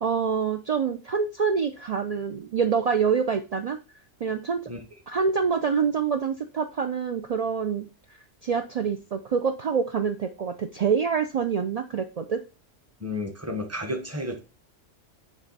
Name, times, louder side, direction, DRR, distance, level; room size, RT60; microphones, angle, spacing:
voice 1, 0.0-3.8 4.2-4.6 5.1-7.9 8.4-12.4, right 6 dB, 75° right, 6 dB, 0.3 m, -26 dB
voice 2, 13.0-14.4, left 1 dB, 15° right, 3 dB, 1.0 m, -32 dB
7.4 x 3.3 x 4.0 m, 0.31 s
omnidirectional pair, 1.3 m